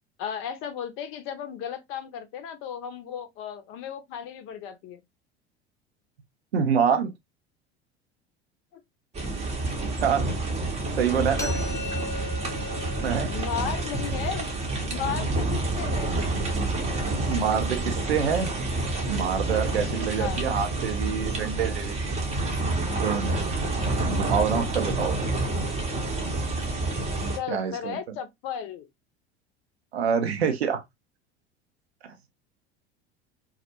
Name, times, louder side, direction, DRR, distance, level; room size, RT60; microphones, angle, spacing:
voice 1, 0.2-5.0 8.7-8.8 11.3-11.6 13.3-14.5 14.8-16.1 20.2-20.4 27.4-28.9, left 8 dB, 40° left, 0.6 m, -35 dB
voice 2, 6.5-7.1 10.0-10.3 11.0-11.6 13.0-13.3 17.3-18.5 19.1-22.2 23.0-23.4 24.0-25.2 27.5-28.0 29.9-30.8 32.0-32.1, right 7 dB, 75° right, 0.6 m, -26 dB
sound 1, 9.1-27.4, right 2 dB, 20° right, 0.7 m, -28 dB
sound 2, 11.4-17.2, left 2 dB, 10° left, 0.9 m, -40 dB
2.2 x 2.0 x 2.8 m
figure-of-eight pair, 70°, 32 cm